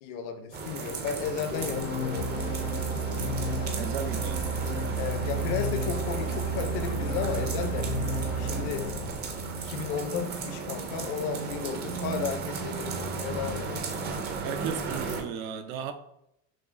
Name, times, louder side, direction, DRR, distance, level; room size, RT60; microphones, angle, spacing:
voice 1, 0.0-2.6 4.9-8.1 8.4-8.9 9.6-13.9, left 7 dB, 55° left, 8 dB, 0.6 m, -34 dB
sound 1, 0.5-15.2, right 4 dB, 25° right, 0.4 m, -35 dB
sound 2, 1.5-9.9, left 6 dB, 85° left, 0.8 m, -35 dB
Musical instrument, 2.1-8.9, right 10 dB, 60° right, 1.0 m, -33 dB
voice 2, 3.8-4.5 14.4-15.9, right 7 dB, 85° right, 8 dB, 0.6 m, -35 dB
5.9 x 2.3 x 2.5 m, 0.79 s
cardioid pair, 145°, 39 cm